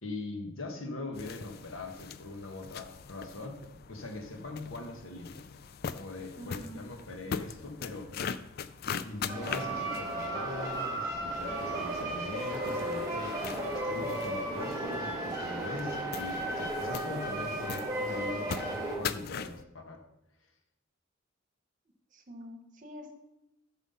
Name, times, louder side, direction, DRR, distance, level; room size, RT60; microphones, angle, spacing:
voice 1, 0.0-3.6 3.9-5.6 5.9-8.5 9.0-20.0, left 2 dB, 75° left, 3 dB, 1.5 m, -42 dB
sound 1, 1.1-19.6, left 6 dB, 50° left, 0.4 m, -42 dB
voice 2, 6.4-6.8 22.1-23.1, equal, 40° right, 4 dB, 1.2 m, -46 dB
sound 2, 9.3-19.0, right 1 dB, 15° right, 1.9 m, -34 dB
7.4 x 6.2 x 5.6 m, 0.88 s
head